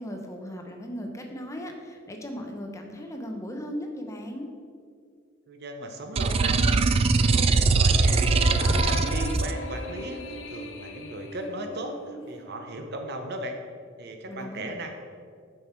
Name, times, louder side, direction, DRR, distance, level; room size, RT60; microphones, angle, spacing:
voice 1, 0.0-4.5 14.3-14.6, equal, 15° left, 3 dB, 0.7 m, -37 dB
voice 2, 5.5-13.6 14.0-14.9, right 1 dB, 55° right, 4 dB, 0.8 m, -37 dB
sound 1, 6.1-9.5, right 3 dB, 30° right, 0.3 m, -21 dB
sound 2, 8.0-12.8, left 2 dB, 65° left, 0.8 m, -38 dB
7.0 x 5.8 x 4.5 m, 2.1 s
head